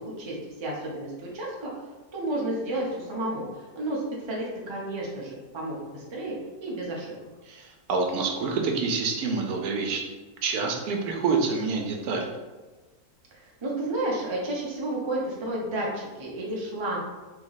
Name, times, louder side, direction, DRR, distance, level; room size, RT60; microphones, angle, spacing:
voice 1, 0.2-1.7 2.1-7.1 13.3-17.0, right 1 dB, 25° right, -3 dB, 0.6 m, -32 dB
voice 2, 7.5-10.0 10.4-12.3, right 4 dB, 80° right, 2 dB, 1.1 m, -27 dB
3.4 x 3.0 x 4.0 m, 1.2 s
omnidirectional pair, 1.6 m